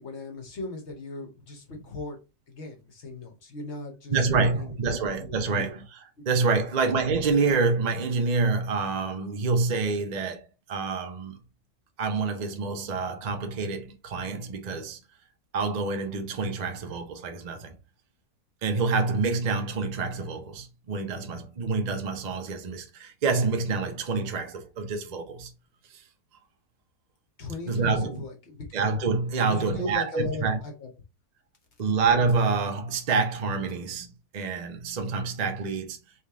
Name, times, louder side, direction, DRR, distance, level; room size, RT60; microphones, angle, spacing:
voice 1, 0.0-2.2 2.5-5.7 6.2-6.3 27.4-27.9 28.2-28.8 29.5-30.9, left 2 dB, 50° left, 1.4 m, -38 dB
voice 2, 4.1-10.4 10.7-11.4 12.0-15.0 15.5-17.8 18.6-25.5 25.9-26.0 27.7-28.2 28.7-30.6 31.8-36.0, right 4 dB, 40° right, 0.6 m, -27 dB
3.5 x 3.3 x 3.5 m
omnidirectional pair, 1.6 m